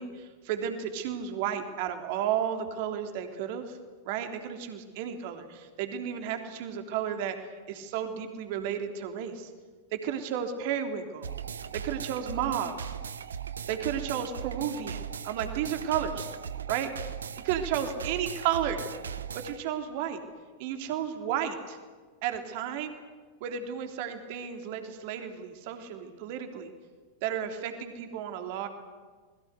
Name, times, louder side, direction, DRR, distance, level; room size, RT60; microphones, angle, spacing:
voice 1, 0.0-3.8 4.0-9.5 9.9-11.3 11.7-12.9 13.7-16.3 16.7-16.9 17.4-18.8 19.3-20.2 20.6-21.8 22.2-22.9 23.4-26.7 27.2-28.7, right 9 dB, 50° right, 6 dB, 3.4 m, -33 dB
sound 1, 11.2-19.6, right 8 dB, 70° right, 1.1 m, -38 dB
29.0 x 21.5 x 8.2 m, 1.4 s
figure-of-eight pair, 90°, 0 cm